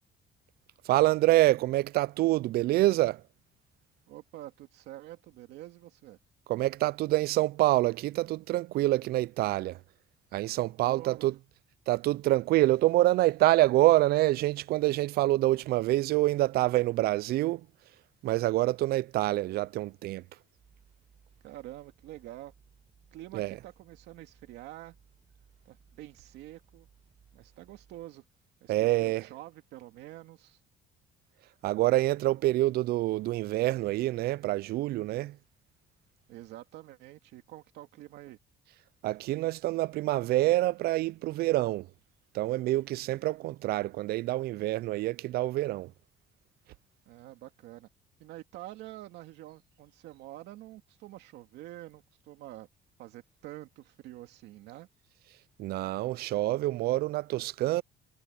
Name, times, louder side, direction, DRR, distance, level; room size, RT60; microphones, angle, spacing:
voice 1, 0.8-3.2 6.5-9.8 10.3-11.4 11.9-17.7 18.2-20.2 23.3-23.5 28.7-29.3 31.6-35.4 39.0-41.9 42.3-45.9 55.6-57.8, right 17 dB, 65° right, 0.4 m, -26 dB
voice 2, 4.1-6.2 10.8-11.3 21.4-22.5 23.1-25.0 25.7-26.9 27.3-28.2 28.6-30.6 36.3-38.4 47.1-47.9 48.2-52.7 53.0-54.9, right 15 dB, 85° right, 2.5 m, -47 dB
sound 1, 20.5-28.0, right 7 dB, 40° right, 4.2 m, -62 dB
cardioid pair, 110°, 17 cm